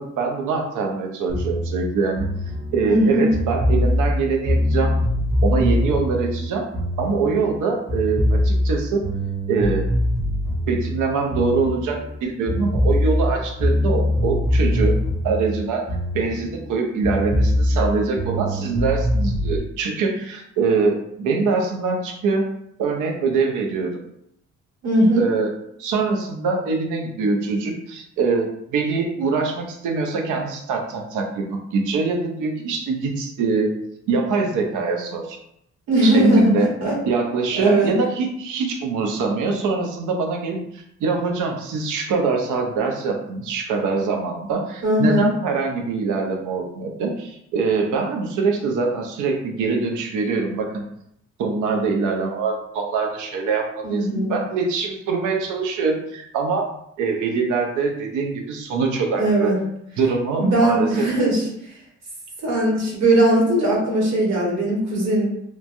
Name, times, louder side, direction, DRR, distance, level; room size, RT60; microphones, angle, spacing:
voice 1, 0.0-2.3 2.7-5.0 5.4-6.7 7.0-9.0 9.5-9.9 10.7-15.9 16.1-22.5 22.8-23.9 25.2-25.5 25.8-33.7 34.1-35.4 36.0-36.7 37.1-50.9 51.4-56.7 57.0-59.5 60.0-61.1, right 4 dB, 85° right, 2 dB, 0.6 m, -23 dB
sound 1, 1.3-7.6 7.9-12.2 12.5-16.7 17.0-19.6, left 1 dB, 25° right, 0.7 m, -22 dB
voice 2, 2.9-3.3 24.8-25.2 35.9-36.9 37.6-37.9 44.8-45.3 53.8-54.3 59.2-59.6 60.4-61.5 62.4-65.2, right 1 dB, 60° right, -4 dB, 1.4 m, -19 dB
3.1 x 2.2 x 2.5 m, 0.76 s
cardioid pair, 90°, 30 cm